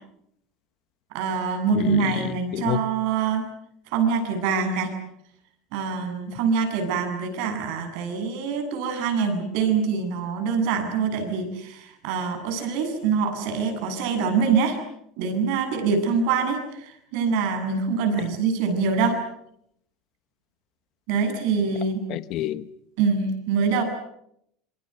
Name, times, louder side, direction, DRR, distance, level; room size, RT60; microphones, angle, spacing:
voice 1, 1.1-3.5 3.9-4.9 5.7-14.8 15.2-19.2 21.1-22.0 23.0-23.8, right 5 dB, 65° right, 7.9 m, -24 dB
voice 2, 1.7-2.8 22.1-22.7, left 13 dB, 50° left, 1.1 m, -29 dB
27.5 x 24.0 x 7.9 m
supercardioid pair, 140°, 0 cm